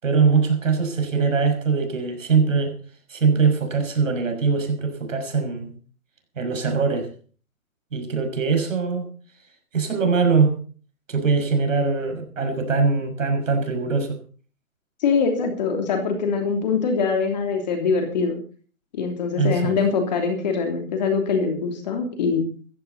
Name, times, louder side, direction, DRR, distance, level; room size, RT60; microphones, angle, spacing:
voice 1, 0.0-2.7 3.1-5.8 6.4-7.1 7.9-9.1 9.7-10.5 11.1-14.2 19.4-19.7, right 5 dB, 65° right, 6 dB, 6.1 m, -22 dB
voice 2, 15.0-18.4 18.9-22.5, left 5 dB, 30° left, 4 dB, 3.1 m, -23 dB
16.5 x 15.0 x 4.1 m, 0.40 s
hypercardioid pair, 165°, 42 cm